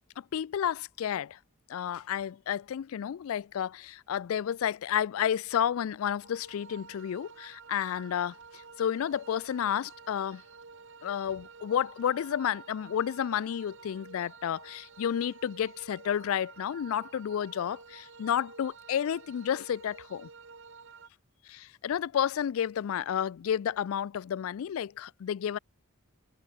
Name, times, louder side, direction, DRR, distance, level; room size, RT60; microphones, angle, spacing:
voice 1, 0.2-1.4 1.7-10.4 11.0-20.3 21.5-25.6, left 9 dB, 70° left, 0.3 m, -31 dB
sound 1, 6.2-21.1, right 5 dB, 60° right, 1.5 m, -51 dB
head